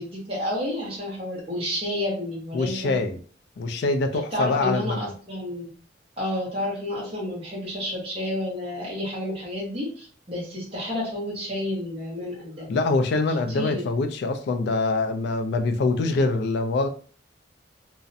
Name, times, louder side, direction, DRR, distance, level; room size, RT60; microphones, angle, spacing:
voice 1, 0.0-3.0 4.3-5.7 6.2-12.7 13.5-13.9, left 1 dB, 30° right, -5 dB, 0.8 m, -30 dB
voice 2, 2.5-3.2 3.6-5.0 12.7-16.9, left 3 dB, 60° left, 7 dB, 0.3 m, -24 dB
2.4 x 2.0 x 2.6 m, 0.42 s
head